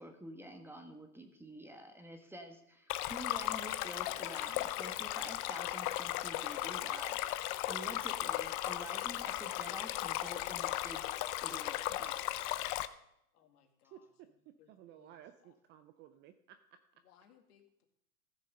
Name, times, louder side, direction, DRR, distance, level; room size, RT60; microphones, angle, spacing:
voice 1, 0.0-12.6, equal, 5° right, 5 dB, 1.2 m, -49 dB
Stream, 2.9-12.9, left 15 dB, 40° left, 0.6 m, -36 dB
voice 2, 13.3-14.1 14.6-15.5 17.0-17.9, left 9 dB, 70° left, 4 dB, 2.3 m, -67 dB
voice 3, 13.9-16.8, right 11 dB, 25° right, 10 dB, 0.4 m, -57 dB
14.5 x 6.5 x 5.4 m, 0.78 s
hypercardioid pair, 115°, 47 cm